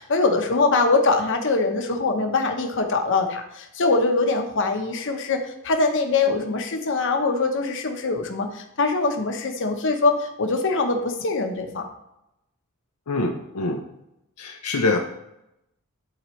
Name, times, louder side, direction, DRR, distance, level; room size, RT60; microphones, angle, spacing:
voice 1, 0.0-11.9, left 3 dB, 60° left, 5 dB, 0.9 m, -23 dB
voice 2, 13.1-13.8 14.4-15.0, left 3 dB, 80° left, 2 dB, 0.6 m, -24 dB
11.5 x 3.9 x 3.2 m, 0.86 s
head